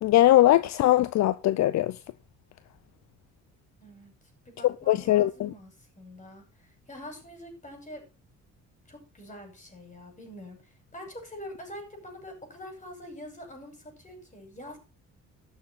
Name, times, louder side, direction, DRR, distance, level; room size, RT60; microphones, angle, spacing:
voice 1, 0.0-1.9 4.9-5.5, left 14 dB, 65° left, 0.6 m, -21 dB
voice 2, 3.8-4.1 4.4-8.0 8.9-14.8, left 1 dB, 25° left, 6.5 m, -45 dB
12.5 x 7.0 x 5.8 m
cardioid pair, 90°, 30 cm